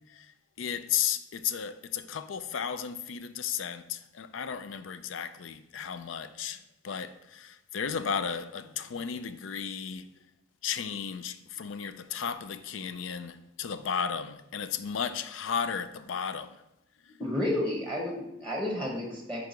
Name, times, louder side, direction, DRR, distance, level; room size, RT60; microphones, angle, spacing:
voice 1, 0.6-10.1 10.6-16.6, left 7 dB, 85° left, 0.4 m, -34 dB
voice 2, 17.2-19.5, left 1 dB, 5° left, 1.0 m, -31 dB
4.8 x 4.7 x 5.1 m
head